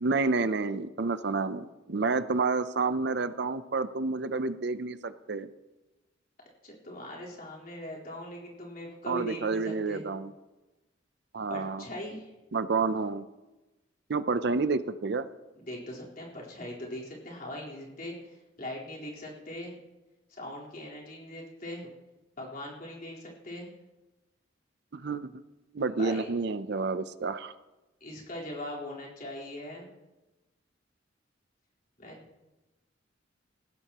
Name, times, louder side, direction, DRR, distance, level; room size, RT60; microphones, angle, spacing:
voice 1, 0.0-5.5 9.1-10.3 11.3-11.8 12.5-13.3 14.1-15.2 24.9-25.3 25.7-27.5, right 4 dB, 60° right, 13 dB, 0.6 m, -29 dB
voice 2, 6.6-10.0 11.5-12.3 15.5-19.8 20.3-21.9 22.4-23.7 25.9-26.3 28.0-29.9 32.0-32.2, left 1 dB, 45° left, -4 dB, 4.1 m, -40 dB
19.0 x 15.5 x 3.0 m, 1.1 s
head